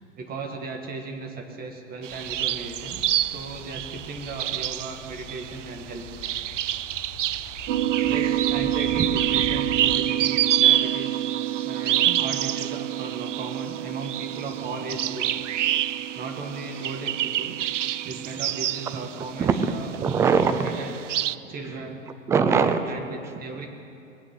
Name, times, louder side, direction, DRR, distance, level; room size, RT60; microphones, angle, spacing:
voice 1, 0.2-6.0 8.0-11.3 11.7-15.4 16.1-17.6 18.0-19.9 20.6-20.9 21.4-22.0 22.9-23.7, right 3 dB, 25° right, 4 dB, 1.7 m, -36 dB
sound 1, 2.0-19.8 20.1-21.4, right 12 dB, 70° right, 0.5 m, -28 dB
sound 2, 2.1-10.0, left 3 dB, 45° left, 1.9 m, -43 dB
sound 3, 7.7-20.1, right 12 dB, 45° right, 1.0 m, -30 dB
voice 2, 19.4-20.8 22.3-22.9, right 6 dB, 10° right, 9 dB, 0.4 m, -22 dB
21.0 x 8.3 x 8.1 m, 2.6 s
hypercardioid pair, 110°, 38 cm